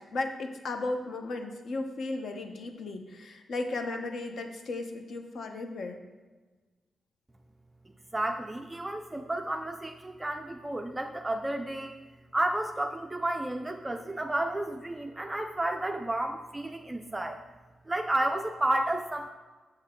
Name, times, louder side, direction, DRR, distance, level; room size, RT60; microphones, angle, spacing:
voice 1, 0.0-6.0, left 2 dB, 60° left, 5 dB, 0.8 m, -35 dB
voice 2, 7.9-11.9 12.3-17.4 17.9-19.3, right 1 dB, 10° right, 5 dB, 0.3 m, -31 dB
7.6 x 6.5 x 3.7 m, 1.3 s
wide cardioid pair, 170°, 0 cm